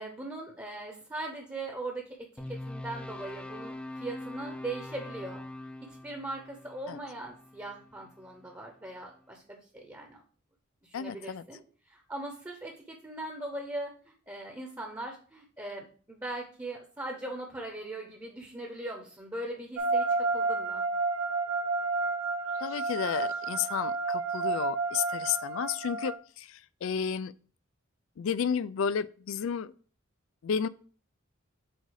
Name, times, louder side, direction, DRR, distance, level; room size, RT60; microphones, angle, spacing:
voice 1, 0.0-5.4 6.0-10.2 10.8-11.6 11.9-20.8, right 2 dB, 15° right, 0.9 m, -40 dB
sound 1, 2.4-8.6, left 1 dB, 5° left, 0.4 m, -43 dB
voice 2, 10.9-11.4 22.6-27.3 28.2-29.7 30.4-30.7, left 7 dB, 70° left, 0.4 m, -32 dB
sound 2, 19.8-26.1, right 3 dB, 80° right, 1.1 m, -30 dB
7.7 x 2.7 x 4.7 m
head